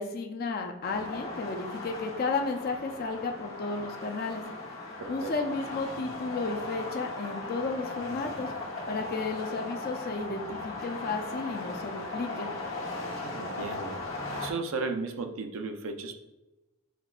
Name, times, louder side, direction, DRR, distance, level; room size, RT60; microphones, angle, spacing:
voice 1, 0.0-4.4 5.1-8.5 8.9-12.5, left 3 dB, 45° left, 4 dB, 0.4 m, -33 dB
sound 1, 0.8-14.5, left 2 dB, 70° left, 1.0 m, -38 dB
voice 2, 5.0-5.3 13.2-14.0 14.4-16.1, right 4 dB, 75° right, 6 dB, 0.5 m, -35 dB
5.8 x 2.2 x 2.4 m, 1.0 s
head